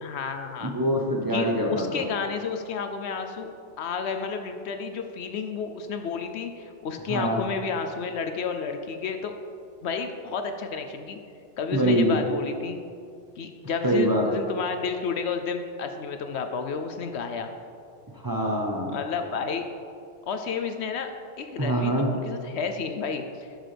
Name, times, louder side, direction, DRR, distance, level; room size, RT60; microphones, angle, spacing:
voice 1, 0.0-0.7 1.3-3.5 3.8-9.3 9.8-11.2 11.6-12.8 13.4-17.5 18.9-19.6 20.3-21.1 21.4-23.5, left 5 dB, 70° left, 6 dB, 0.8 m, -31 dB
voice 2, 0.6-2.0 7.1-7.4 11.7-12.2 13.8-14.3 18.2-19.0 21.6-22.1, right 1 dB, 20° right, -2 dB, 0.7 m, -24 dB
11.5 x 6.4 x 3.3 m, 2.4 s
omnidirectional pair, 1.2 m